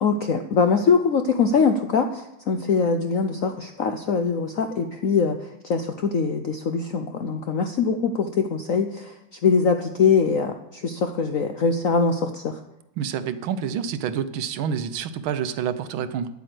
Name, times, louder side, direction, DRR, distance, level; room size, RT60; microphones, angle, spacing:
voice 1, 0.0-12.6, left 5 dB, 70° left, 6 dB, 0.8 m, -23 dB
voice 2, 13.0-16.3, right 8 dB, 80° right, 13 dB, 1.6 m, -28 dB
9.7 x 8.7 x 7.7 m, 0.88 s
omnidirectional pair, 2.2 m